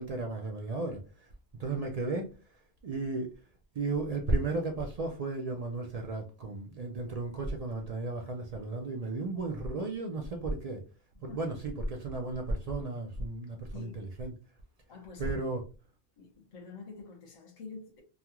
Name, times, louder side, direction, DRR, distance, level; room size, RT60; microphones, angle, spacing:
voice 1, 0.0-1.3 1.6-3.3 3.7-10.8 11.2-14.3 15.2-15.6, right 2 dB, 70° right, 0.3 m, -34 dB
voice 2, 14.9-15.4 16.2-18.0, left 4 dB, 45° left, 1.0 m, -47 dB
2.4 x 2.3 x 2.8 m
omnidirectional pair, 1.2 m